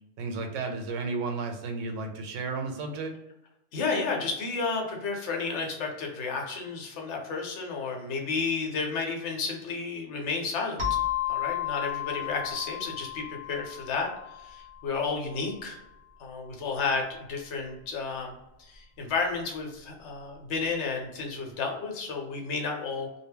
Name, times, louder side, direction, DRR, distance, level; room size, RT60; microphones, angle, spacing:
voice 1, 0.2-3.1, right 3 dB, 85° right, 5 dB, 0.9 m, -33 dB
voice 2, 3.7-10.8 11.3-15.8 16.2-18.3 18.6-23.1, left 4 dB, 70° left, 1 dB, 1.0 m, -32 dB
sound 1, 10.8-15.2, left 11 dB, 45° right, 0.8 m, -33 dB
2.2 x 2.1 x 3.5 m, 0.89 s
omnidirectional pair, 1.3 m